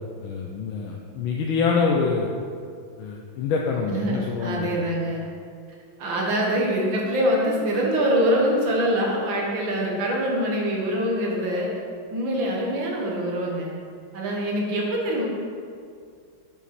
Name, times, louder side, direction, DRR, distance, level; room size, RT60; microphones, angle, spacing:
voice 1, 0.0-2.3 3.0-4.8, left 5 dB, 85° left, -1 dB, 1.5 m, -26 dB
voice 2, 3.9-5.2 6.0-11.7 12.1-13.7 14.1-15.2, equal, 70° right, -2 dB, 2.1 m, -24 dB
7.9 x 7.1 x 4.3 m, 2.3 s
omnidirectional pair, 2.2 m